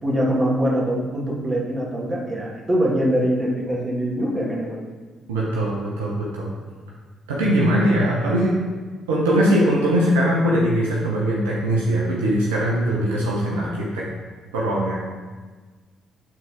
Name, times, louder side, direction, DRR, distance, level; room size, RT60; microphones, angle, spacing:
voice 1, 0.0-4.8, equal, 30° right, -3 dB, 1.9 m, -23 dB
voice 2, 5.3-6.5 7.3-8.6 9.1-14.0 14.5-15.0, right 1 dB, 80° right, -4 dB, 0.8 m, -21 dB
7.4 x 4.0 x 4.5 m, 1.4 s
hypercardioid pair, 45°, 0 cm